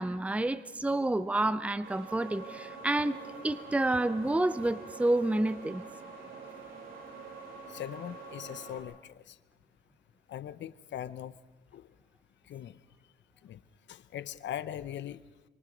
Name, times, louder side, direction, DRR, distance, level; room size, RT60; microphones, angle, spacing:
voice 1, 0.0-3.2 3.4-5.8, right 2 dB, 5° right, 13 dB, 0.7 m, -29 dB
sound 1, 1.8-8.8, right 4 dB, 85° right, 7.8 m, -46 dB
voice 2, 7.7-9.4 10.3-11.3 11.7-11.9 12.5-12.8 13.4-13.6 13.9-15.2, left 11 dB, 65° left, 15 dB, 0.9 m, -40 dB
26.0 x 23.5 x 5.3 m, 1.1 s
cardioid pair, 90°, 20 cm